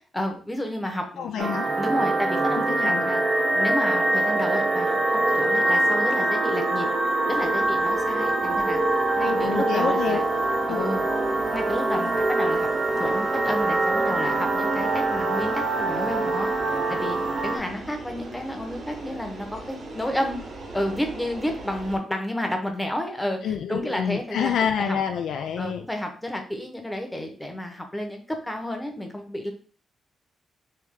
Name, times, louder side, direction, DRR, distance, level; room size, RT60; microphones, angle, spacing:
voice 1, 0.1-3.2 3.5-6.9 7.3-8.8 9.2-10.2 10.7-11.0 11.5-12.7 13.0-16.5 16.9-17.2 17.4-20.4 20.7-25.0 25.6-29.5, left 1 dB, 10° left, 4 dB, 0.8 m, -31 dB
voice 2, 1.2-1.7 2.6-3.1 9.2-10.2 10.7-10.9 23.4-25.8, left 8 dB, 85° left, 6 dB, 0.3 m, -28 dB
sound 1, 1.4-17.6, right 2 dB, 40° right, 0.7 m, -24 dB
sound 2, 7.3-22.0, right 2 dB, 65° right, 1.5 m, -42 dB
3.3 x 3.0 x 3.6 m, 0.42 s
cardioid pair, 100°, 0 cm